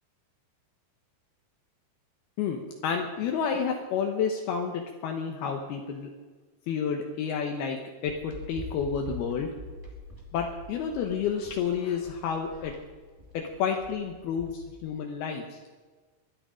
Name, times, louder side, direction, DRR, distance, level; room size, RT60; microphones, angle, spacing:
voice 1, 2.4-6.1 6.7-9.5 10.3-12.8 13.3-15.6, left 6 dB, 75° left, 2 dB, 2.9 m, -30 dB
sound 1, 8.0-14.9, equal, 5° right, 1.9 m, -44 dB
23.0 x 9.9 x 5.0 m, 1.3 s
omnidirectional pair, 4.7 m